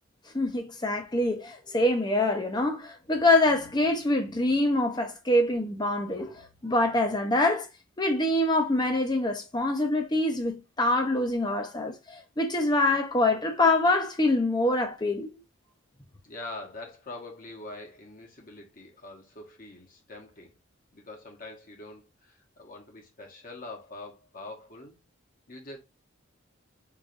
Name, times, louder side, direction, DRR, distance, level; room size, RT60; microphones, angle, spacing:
voice 1, 0.3-7.7 8.0-15.3, left 2 dB, 20° left, 0.7 m, -25 dB
voice 2, 16.2-20.5 20.9-25.0 25.5-25.8, left 2 dB, 45° left, 1.1 m, -44 dB
4.8 x 2.5 x 2.5 m
head